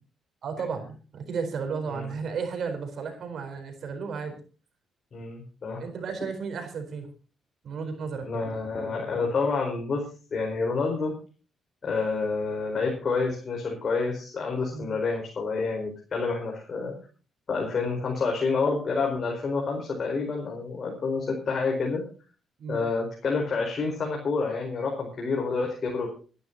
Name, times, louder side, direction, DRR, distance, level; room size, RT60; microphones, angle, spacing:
voice 1, 0.4-4.3 5.8-7.1 7.6-8.5 11.0-11.1 14.7-14.9 22.6-22.8, right 5 dB, 60° right, 6 dB, 4.2 m, -33 dB
voice 2, 5.1-5.8 8.2-10.0 10.3-11.1 11.8-16.9 17.5-22.0 22.7-26.2, left 4 dB, 45° left, 0 dB, 4.7 m, -28 dB
25.0 x 11.5 x 2.9 m, 0.37 s
cardioid pair, 90°, 0 cm